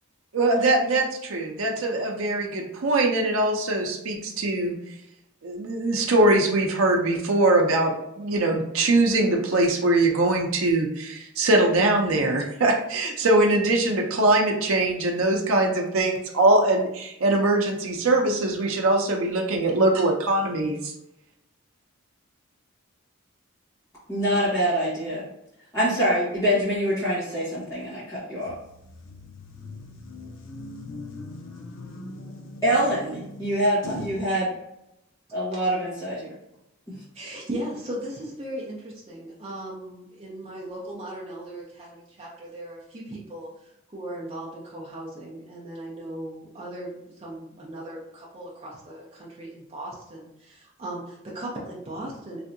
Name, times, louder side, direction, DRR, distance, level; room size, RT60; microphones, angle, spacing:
voice 1, 0.3-4.7 5.4-20.9, right 2 dB, 80° right, 1 dB, 0.6 m, -22 dB
voice 2, 24.1-25.3 25.7-28.6 32.6-34.5 35.3-36.3 36.9-37.0, equal, 15° left, -12 dB, 1.1 m, -25 dB
sound 1, 28.5-34.3, left 2 dB, 65° left, 0.5 m, -40 dB
voice 3, 37.1-52.4, right 1 dB, 30° right, -5 dB, 0.6 m, -37 dB
3.3 x 2.7 x 2.6 m, 0.83 s
head